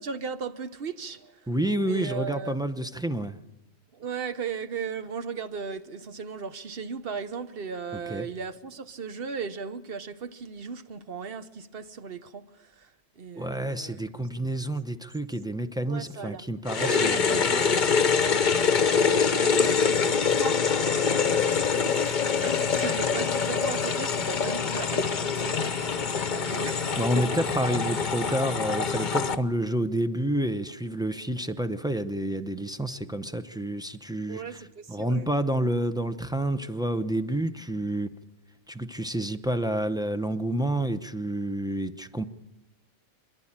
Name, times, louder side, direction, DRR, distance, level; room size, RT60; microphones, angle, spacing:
voice 1, 0.0-1.5 1.7-2.6 3.9-14.1 15.8-16.4 16.8-17.9 18.6-27.0 27.3-27.4 34.3-35.3, right 5 dB, 50° right, 1.1 m, -37 dB
voice 2, 1.5-3.4 8.1-8.3 13.3-17.5 27.0-38.1 38.7-42.2, right 1 dB, 5° right, 0.5 m, -29 dB
sound 1, 16.7-29.3, left 6 dB, 40° left, 0.9 m, -25 dB
27.0 x 12.0 x 8.8 m
omnidirectional pair, 1.3 m